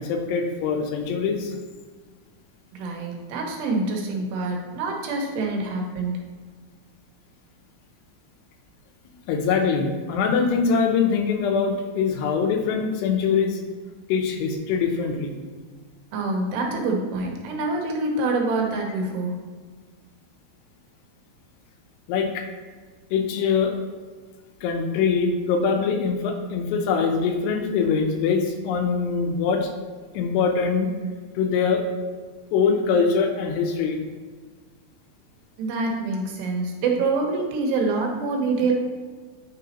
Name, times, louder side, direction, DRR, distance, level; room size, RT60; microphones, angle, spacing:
voice 1, 0.0-1.6 9.3-13.6 14.1-15.4 22.1-22.5 23.1-23.8 24.6-29.7 30.1-30.9 31.4-31.8 32.5-34.0, left 5 dB, 85° left, 4 dB, 2.7 m, -23 dB
voice 2, 2.7-6.2 16.1-19.3 35.6-38.7, right 3 dB, 80° right, 1 dB, 2.9 m, -26 dB
9.2 x 4.0 x 2.9 m, 1.5 s
omnidirectional pair, 4.9 m